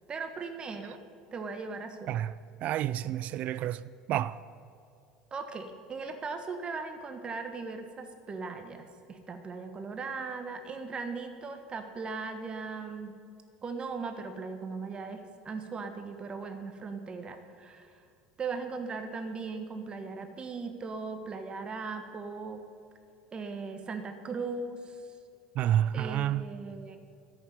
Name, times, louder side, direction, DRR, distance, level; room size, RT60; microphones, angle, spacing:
voice 1, 0.1-1.0 1.3-2.1 5.3-13.1 13.6-18.0 18.4-22.6 23.3-25.1 25.9-27.0, right 4 dB, 30° right, 1.3 m, -38 dB
voice 2, 2.6-3.8 4.1-4.4 25.6-26.4, right 11 dB, 50° right, 0.4 m, -29 dB
11.0 x 8.5 x 9.5 m
hypercardioid pair, 80°, 3 cm